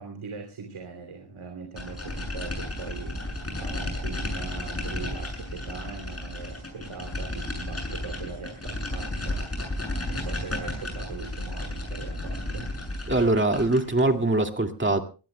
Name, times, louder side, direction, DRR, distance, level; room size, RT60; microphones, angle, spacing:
voice 1, 0.0-12.7, right 5 dB, 75° right, 4 dB, 3.0 m, -41 dB
sound 1, 1.8-14.1, left 1 dB, 30° left, 7.4 m, -33 dB
voice 2, 13.1-15.0, right 2 dB, 25° right, 4 dB, 2.1 m, -22 dB
24.0 x 19.5 x 2.2 m, 0.34 s
wide cardioid pair, 105°, 49 cm